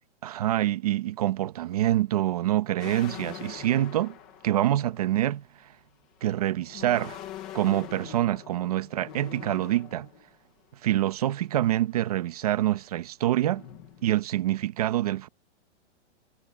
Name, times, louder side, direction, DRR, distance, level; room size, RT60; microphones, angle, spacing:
voice 1, 0.2-4.2 4.4-5.7 6.2-7.2 7.5-10.1 10.8-13.6 14.0-15.3, right 13 dB, 35° right, 1.0 m, -26 dB
sound 1, 2.8-5.4 6.2-10.3 11.1-11.4 11.7-12.9 13.4-14.1, left 10 dB, 5° left, 0.5 m, -44 dB
hypercardioid pair, 175°, 36 cm